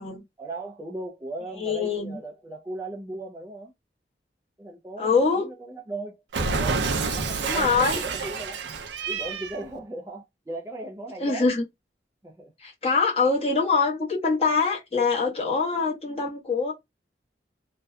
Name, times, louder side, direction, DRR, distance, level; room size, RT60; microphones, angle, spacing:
voice 1, 0.4-3.7 4.6-6.8 7.1-8.6 9.1-11.5 12.2-12.5, right 2 dB, 15° right, 0.4 m, -37 dB
voice 2, 1.6-2.2 5.0-5.5 7.4-8.0 11.2-11.6 12.6-16.7, left 4 dB, 35° left, 1.0 m, -24 dB
Cat, 6.3-9.6, right 4 dB, 85° right, 0.5 m, -28 dB
2.6 x 2.1 x 2.3 m
head